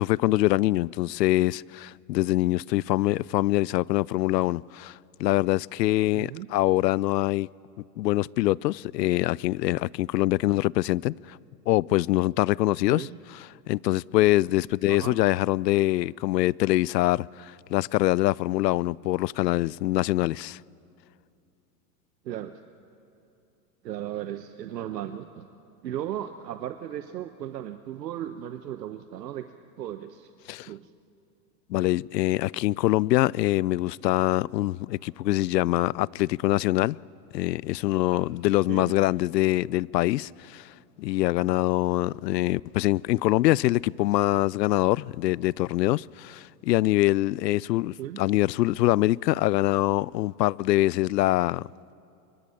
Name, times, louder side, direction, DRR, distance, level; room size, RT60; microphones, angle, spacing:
voice 1, 0.0-4.9 5.2-7.5 8.0-11.4 11.7-13.1 13.7-20.6 30.5-30.7 31.7-37.0 37.3-40.7 41.0-51.7, left 17 dB, 85° left, 0.6 m, -24 dB
voice 2, 6.1-6.5 12.9-13.2 14.9-15.2 22.2-22.6 23.8-25.4 25.8-29.5 29.8-30.3 30.7-30.9 37.9-38.2 38.7-38.9 48.0-48.2, right 11 dB, 85° right, 1.2 m, -36 dB
24.0 x 23.0 x 9.9 m
hypercardioid pair, 115°, 48 cm